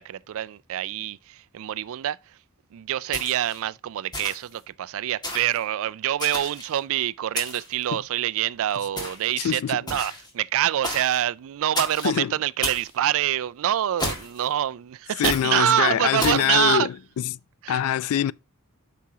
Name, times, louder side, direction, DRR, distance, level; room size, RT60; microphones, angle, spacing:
voice 1, 0.0-2.2 2.7-16.9 17.6-17.8, right 11 dB, 65° right, 0.3 m, -26 dB
sound 1, 3.1-3.6 4.1-4.6 5.2-5.6 6.2-6.8 7.4-7.8 9.0-9.3 9.9-10.3 10.8-11.2 11.8-12.1 12.6-12.9 14.0-14.5 15.2-15.5 16.2-16.5, left 1 dB, 20° left, 1.9 m, -31 dB
voice 2, 9.4-9.8 12.0-12.3 15.2-17.3 17.7-18.3, left 10 dB, 70° left, 0.3 m, -24 dB
8.5 x 5.9 x 2.8 m
head